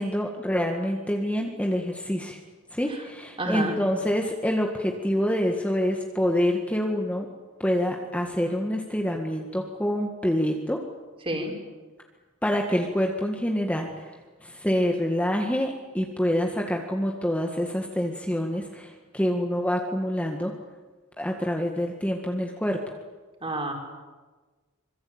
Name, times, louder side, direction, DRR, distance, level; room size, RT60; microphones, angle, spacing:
voice 1, 0.0-2.4 2.7-7.3 7.6-10.8 12.4-14.0 14.4-20.5 21.2-22.8, equal, 5° left, 1 dB, 1.9 m, -26 dB
voice 2, 3.4-3.8 11.2-11.5 23.4-23.7, right 1 dB, 25° right, 2 dB, 5.2 m, -28 dB
25.5 x 23.0 x 8.9 m, 1.3 s
head